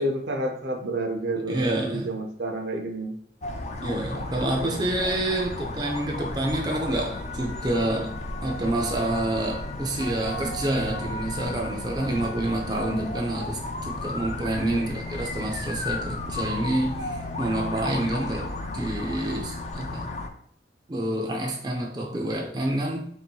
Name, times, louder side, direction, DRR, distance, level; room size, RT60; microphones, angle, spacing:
voice 1, 0.0-3.2 4.4-5.0 12.7-12.8 14.7-14.8, right 1 dB, 70° right, 3 dB, 0.7 m, -30 dB
voice 2, 1.5-2.1 3.8-20.1 20.9-23.1, right 1 dB, 25° right, 0 dB, 0.5 m, -28 dB
sound 1, 3.4-20.3, left 2 dB, 40° left, 0.4 m, -34 dB
3.1 x 2.7 x 4.5 m, 0.67 s
head